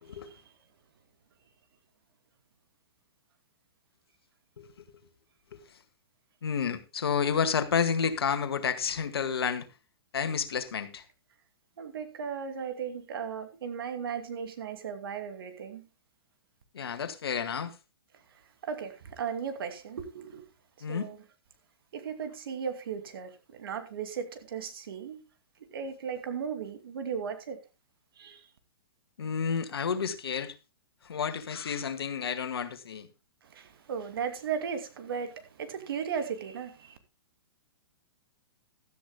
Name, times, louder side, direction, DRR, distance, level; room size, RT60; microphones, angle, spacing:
voice 1, 6.4-9.7 10.1-11.0 16.7-17.7 20.8-21.1 29.2-30.5 31.1-33.1, left 6 dB, 75° left, 1.8 m, -30 dB
voice 2, 11.8-15.9 18.3-20.4 20.9-21.2 21.9-25.2 25.7-27.6 28.2-28.5 33.4-37.0, right 7 dB, 65° right, 2.6 m, -36 dB
16.5 x 13.0 x 2.2 m
hypercardioid pair, 125°, 13 cm